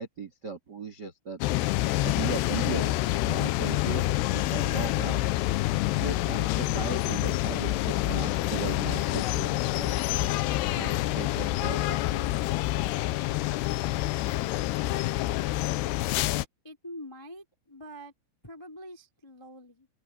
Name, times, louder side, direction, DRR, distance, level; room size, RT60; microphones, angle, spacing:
voice 1, 0.0-1.4 2.0-3.0 3.3-4.0 4.3-5.2 6.0-10.0 10.7-12.3, right 4 dB, 45° right, 1.4 m, -37 dB
sound 1, 1.4-16.5, left 16 dB, 80° left, 2.5 m, -27 dB
voice 2, 16.6-18.1 18.4-19.9, equal, 10° left, 1.2 m, -45 dB
open air
omnidirectional pair, 5.4 m